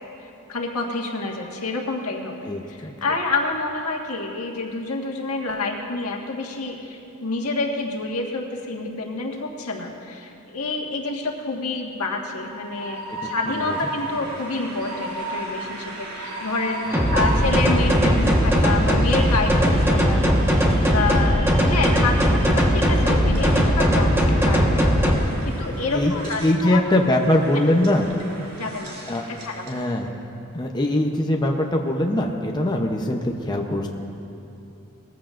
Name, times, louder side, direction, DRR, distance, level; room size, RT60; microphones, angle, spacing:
voice 1, 0.5-20.2 20.9-26.8 28.6-29.0 29.4-29.7, left 3 dB, 80° left, 0 dB, 1.6 m, -28 dB
voice 2, 2.4-2.9 13.1-13.3 13.6-13.8 16.9-17.5 25.9-26.1 26.4-28.1 29.1-29.2 29.7-30.1 30.5-33.9, left 1 dB, 20° left, 1 dB, 0.7 m, -22 dB
Train, 12.1-29.9, right 1 dB, 80° right, 2.8 m, -36 dB
sound 1, 16.9-25.1, equal, 10° right, 1.3 m, -19 dB
20.5 x 14.5 x 2.5 m, 2.8 s
head